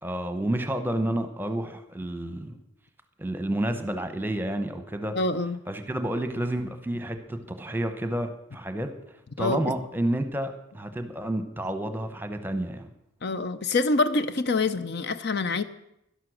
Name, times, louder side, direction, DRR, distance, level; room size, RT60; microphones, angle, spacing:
voice 1, 0.0-2.6 3.2-5.2 5.7-8.9 9.4-12.9, right 1 dB, 10° right, 8 dB, 1.0 m, -30 dB
voice 2, 5.1-5.6 9.4-9.6 13.2-15.6, left 3 dB, 50° left, 12 dB, 0.7 m, -26 dB
12.0 x 11.0 x 6.4 m, 0.81 s
head